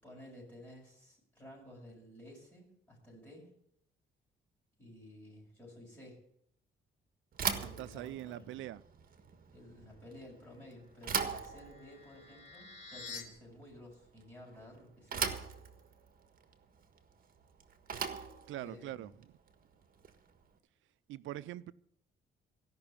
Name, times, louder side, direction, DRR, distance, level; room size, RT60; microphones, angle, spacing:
voice 1, 0.0-3.5 4.8-6.2 7.5-8.6 9.5-15.3 18.5-19.1, left 1 dB, 5° left, 6.6 m, -53 dB
Bicycle / Thump thud, 7.3-20.4, right 6 dB, 45° right, 1.5 m, -41 dB
voice 2, 7.5-8.8 18.5-19.3 21.1-21.7, right 14 dB, 80° right, 0.6 m, -43 dB
sound 1, 11.0-13.2, left 4 dB, 35° left, 3.2 m, -49 dB
16.5 x 6.0 x 8.7 m
cardioid pair, 90°, 20 cm